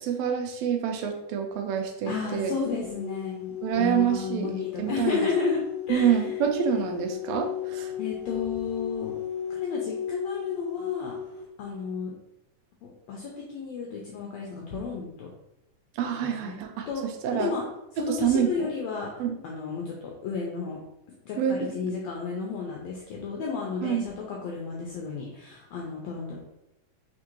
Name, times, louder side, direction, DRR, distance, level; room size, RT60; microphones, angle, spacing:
voice 1, 0.0-2.5 3.6-4.5 4.8-5.2 5.9-7.9 16.0-16.9 17.2-17.5 18.1-18.7 19.2-19.4 21.4-21.7 23.8-24.0, right 8 dB, 80° right, 3 dB, 1.7 m, -27 dB
voice 2, 2.1-5.6 5.9-6.3 8.0-9.1 9.5-11.1 11.6-12.1 12.8-15.3 16.2-16.6 16.9-17.0 17.3-17.6 17.9-19.1 19.4-20.8 21.2-26.4, left 5 dB, 75° left, -1 dB, 1.7 m, -32 dB
sound 1, 2.4-11.4, left 9 dB, 55° left, 1.6 m, -35 dB
4.3 x 3.7 x 3.0 m, 0.85 s
omnidirectional pair, 3.5 m